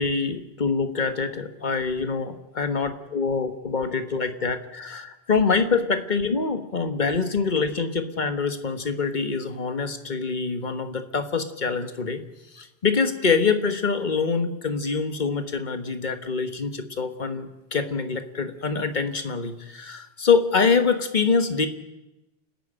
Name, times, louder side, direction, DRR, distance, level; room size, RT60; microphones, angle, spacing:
voice 1, 0.0-12.2 12.5-21.7, left 5 dB, 45° left, 8 dB, 1.5 m, -25 dB
29.5 x 10.5 x 9.0 m, 1.0 s
omnidirectional pair, 1.1 m